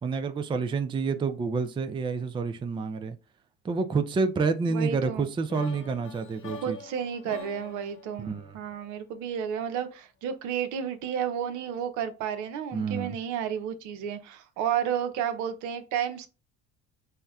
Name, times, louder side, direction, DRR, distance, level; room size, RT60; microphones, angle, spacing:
voice 1, 0.0-3.2 3.6-6.8 8.2-8.6 12.7-13.2, right 4 dB, 15° right, 0.4 m, -28 dB
voice 2, 4.7-5.2 6.6-16.3, right 8 dB, 75° right, 0.6 m, -32 dB
sound 1, 5.5-9.5, left 4 dB, 45° left, 0.9 m, -46 dB
5.5 x 2.1 x 2.3 m
supercardioid pair, 80°, 30 cm